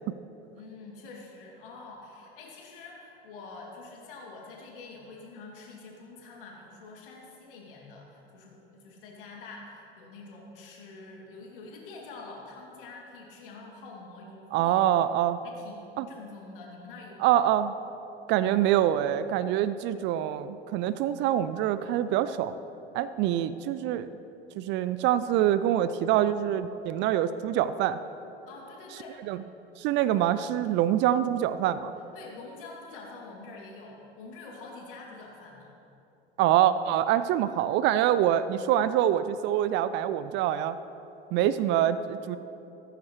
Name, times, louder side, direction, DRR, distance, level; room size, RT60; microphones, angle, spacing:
voice 1, 0.5-14.8 15.4-17.3 28.5-29.2 32.1-35.7, left 3 dB, 65° left, -1 dB, 2.7 m, -46 dB
voice 2, 14.5-15.4 16.0-16.1 17.2-17.7 18.3-22.5 22.9-24.1 24.6-28.0 29.3-29.4 29.8-31.9 36.4-40.8 41.3-42.4, right 11 dB, 40° right, 13 dB, 0.4 m, -25 dB
15.0 x 14.0 x 3.2 m, 2.9 s
figure-of-eight pair, 75°, 30 cm